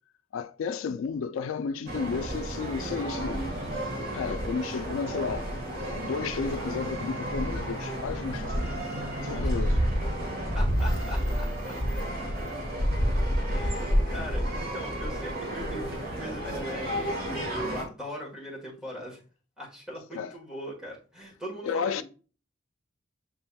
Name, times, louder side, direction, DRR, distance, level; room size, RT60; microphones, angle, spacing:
voice 1, 0.3-3.4 4.1-5.5 5.9-8.8 9.2-9.8 20.1-20.3 21.6-22.0, left 5 dB, 85° left, 0.3 m, -32 dB
sound 1, 1.9-17.8, equal, 50° right, 1.3 m, -30 dB
voice 2, 9.4-10.3 10.5-11.8 13.5-19.2 19.6-22.0, equal, 5° right, 1.3 m, -40 dB
7.1 x 3.4 x 2.2 m
head